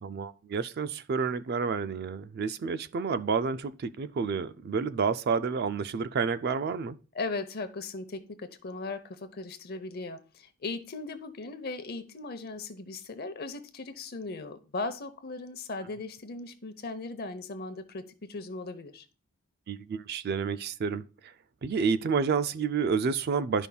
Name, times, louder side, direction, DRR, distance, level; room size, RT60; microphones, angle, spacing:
voice 1, 0.0-7.0 19.7-21.3 21.6-23.7, right 5 dB, 45° right, 0.3 m, -29 dB
voice 2, 7.1-19.0, left 3 dB, 45° left, 0.7 m, -38 dB
11.5 x 5.3 x 2.3 m
head